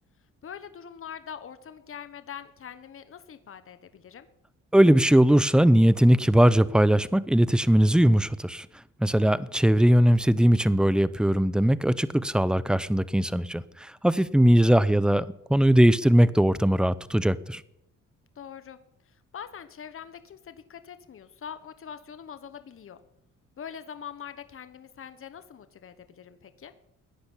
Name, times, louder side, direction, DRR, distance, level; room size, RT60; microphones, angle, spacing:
voice 1, 0.4-4.3 9.2-9.6 18.3-18.8 19.1-23.0 23.6-26.7, left 8 dB, 45° left, 1.3 m, -43 dB
voice 2, 4.7-8.7 9.0-17.6, equal, 5° right, 0.8 m, -20 dB
16.5 x 10.5 x 8.3 m
cardioid pair, 90°, 30 cm